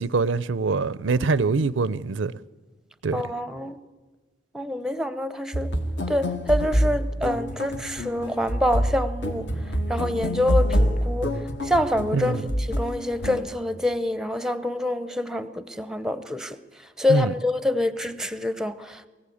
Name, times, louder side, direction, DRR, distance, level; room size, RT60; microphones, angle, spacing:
voice 1, 0.0-2.3 3.0-3.2 12.1-12.5 17.1-17.3, right 4 dB, 85° right, 0.5 m, -24 dB
voice 2, 3.1-3.8 4.5-5.7 6.1-9.5 9.9-11.3 11.6-12.4 12.7-16.6 17.0-19.1, left 1 dB, 5° right, 0.6 m, -26 dB
sound 1, 5.5-13.4, equal, 65° left, 1.6 m, -26 dB
23.0 x 15.5 x 8.5 m
head